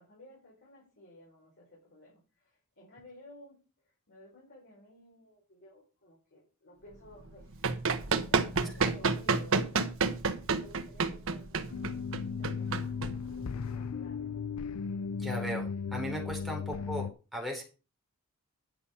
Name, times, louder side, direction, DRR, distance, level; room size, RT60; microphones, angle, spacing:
voice 1, 0.0-3.6 3.8-11.8 12.4-13.4 13.7-14.4 16.7-17.0, left 1 dB, 55° left, -5 dB, 5.9 m, -56 dB
Run, 7.3-13.7, right 4 dB, 65° right, 1.2 m, -30 dB
sound 1, 11.7-17.1, left 5 dB, 80° left, 0.5 m, -36 dB
voice 2, 15.2-17.6, equal, ahead, -1 dB, 3.9 m, -37 dB
11.0 x 6.9 x 5.5 m, 0.33 s
head